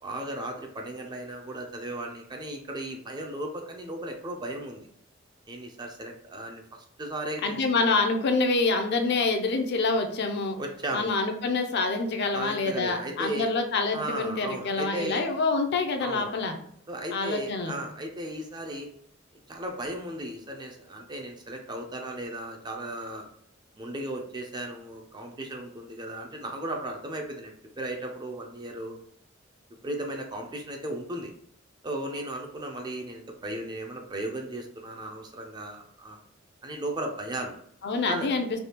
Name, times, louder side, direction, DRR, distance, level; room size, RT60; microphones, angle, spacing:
voice 1, 0.0-4.9 5.5-6.6 7.0-7.6 10.6-11.1 12.3-13.5 13.9-15.2 16.0-16.4 16.9-18.9 19.5-23.3 23.8-28.9 29.8-31.3 31.8-36.2 36.6-37.5 38.1-38.3, right 1 dB, 20° right, 2 dB, 0.4 m, -35 dB
voice 2, 7.4-10.6 10.9-16.5 17.1-17.8 37.8-38.5, left 3 dB, 55° left, 5 dB, 0.4 m, -26 dB
3.4 x 2.3 x 2.9 m, 0.66 s
head